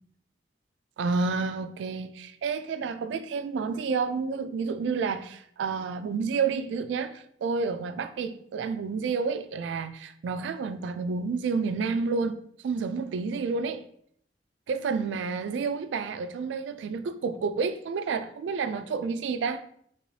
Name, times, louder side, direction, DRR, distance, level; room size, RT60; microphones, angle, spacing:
voice 1, 1.0-13.8 14.7-19.6, right 5 dB, 80° right, 0.3 m, -30 dB
2.9 x 2.7 x 3.1 m
head